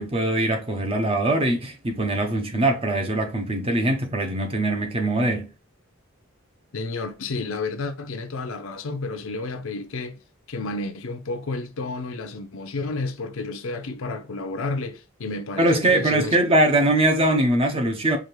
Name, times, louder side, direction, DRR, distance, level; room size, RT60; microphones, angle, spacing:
voice 1, 0.0-5.5 15.6-18.2, right 1 dB, 30° right, 0.7 m, -22 dB
voice 2, 6.7-10.2 10.5-16.4, left 3 dB, 70° left, 0.6 m, -31 dB
4.8 x 2.5 x 3.1 m
head